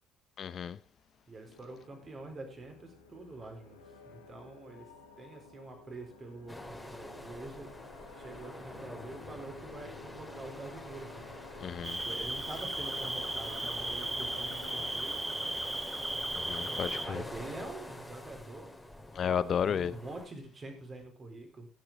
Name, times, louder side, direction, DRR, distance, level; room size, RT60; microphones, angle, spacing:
voice 1, 0.4-0.8 11.6-12.0 16.3-17.2 19.2-19.9, left 8 dB, 45° left, 0.6 m, -32 dB
voice 2, 1.3-4.9 5.2-7.7 8.1-11.2 12.0-15.2 17.0-18.7 19.2-21.7, right 2 dB, 35° right, 4.3 m, -46 dB
sound 1, 1.5-14.9, left 4 dB, 80° left, 2.3 m, -53 dB
sound 2, 6.5-20.3, left 1 dB, 5° left, 2.6 m, -46 dB
Cricket, 11.8-17.1, right 1 dB, 20° right, 2.0 m, -36 dB
18.5 x 7.8 x 3.7 m
figure-of-eight pair, 50°, 0 cm